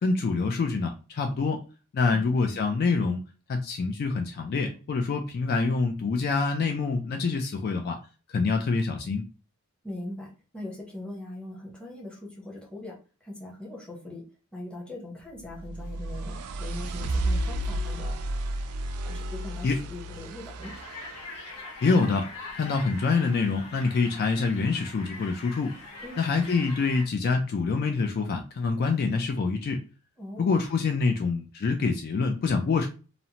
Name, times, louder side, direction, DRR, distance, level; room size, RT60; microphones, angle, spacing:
voice 1, 0.0-1.6 1.9-3.2 3.5-8.0 8.3-9.3 19.6-19.8 21.8-22.3 22.5-25.7 26.2-29.8 30.4-32.9, left 4 dB, 45° left, 5 dB, 0.3 m, -26 dB
voice 2, 2.1-2.6 9.8-10.3 10.5-13.0 13.2-14.3 14.5-18.3 19.0-20.7 26.0-26.2 30.2-30.5, left 1 dB, 5° left, -3 dB, 0.8 m, -41 dB
sound 1, 15.4-21.5, right 1 dB, 75° right, 0.3 m, -32 dB
sound 2, 20.6-27.1, left 3 dB, 70° left, 0.8 m, -43 dB
2.7 x 2.0 x 2.8 m, 0.34 s
head